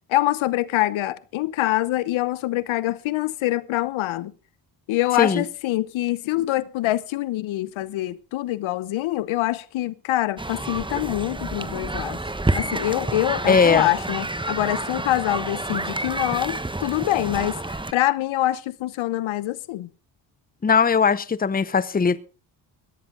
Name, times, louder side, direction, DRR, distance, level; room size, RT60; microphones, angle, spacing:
voice 1, 0.1-4.3 4.9-12.2 12.5-17.6 17.9-19.9, left 15 dB, 70° left, 0.9 m, -25 dB
sound 1, 10.4-17.9, right 2 dB, 10° right, 1.2 m, -29 dB
voice 2, 13.5-13.9 20.6-22.2, left 5 dB, 20° left, 0.8 m, -19 dB
16.5 x 13.0 x 3.8 m
supercardioid pair, 55°, 50 cm